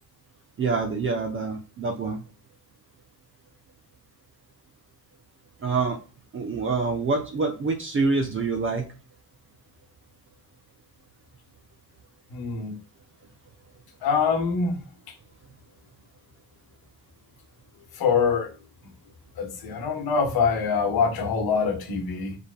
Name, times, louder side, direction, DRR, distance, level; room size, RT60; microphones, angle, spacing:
voice 1, 0.6-2.2 5.6-6.0 6.3-8.9, right 4 dB, 30° right, 0.7 m, -26 dB
voice 2, 12.3-12.8 14.0-14.8 18.0-18.5 19.4-22.4, left 5 dB, 60° left, 1.2 m, -24 dB
4.9 x 3.6 x 2.2 m
cardioid pair, 90°, 40 cm